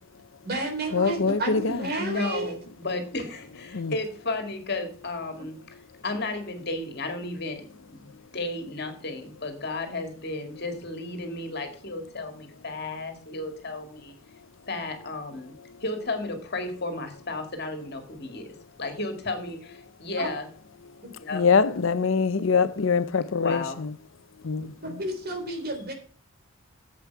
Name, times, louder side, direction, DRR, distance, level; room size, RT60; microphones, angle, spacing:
voice 1, 0.4-2.5 20.2-20.3 21.0-21.1 24.8-25.9, right 1 dB, 50° right, 3.6 m, -31 dB
voice 2, 0.9-1.8 3.7-3.9 21.3-23.9 24.4-24.7, left 5 dB, 70° left, 0.6 m, -23 dB
voice 3, 2.0-5.6 6.0-14.2 14.7-20.5 21.2-21.4 23.4-23.8, left 2 dB, 55° left, 2.2 m, -33 dB
10.0 x 8.0 x 4.7 m
head